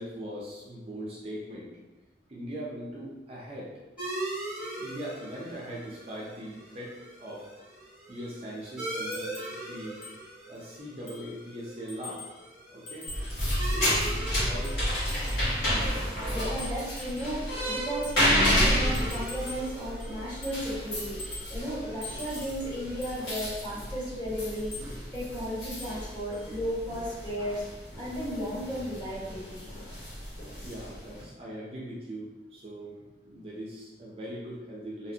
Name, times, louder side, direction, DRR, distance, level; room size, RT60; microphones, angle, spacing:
voice 1, 0.0-1.7 2.3-3.7 4.8-7.5 8.1-10.0 10.5-12.3 12.7-13.1 13.6-15.2 30.6-33.0 33.2-35.1, equal, 35° right, -5 dB, 0.4 m, -40 dB
sound 1, 4.0-23.1, right 1 dB, 5° right, 0.9 m, -41 dB
sound 2, 9.1-9.6 10.0-10.2 10.5-10.6 11.1-11.3 11.9-12.4 12.9-14.2 14.6-15.5 16.2-17.4 18.0-18.2 18.9-19.7 20.0-20.7 20.9-21.6 22.0-22.6 23.0-23.6 24.5-24.9 25.8-26.0 26.3-26.4, left 2 dB, 45° left, 0.7 m, -45 dB
sound 3, 13.1-31.2, equal, 65° left, 1.3 m, -31 dB
voice 2, 16.3-24.7 25.1-27.6 28.0-29.6, equal, 25° left, -11 dB, 1.4 m, -34 dB
2.7 x 2.5 x 2.7 m, 1.1 s
head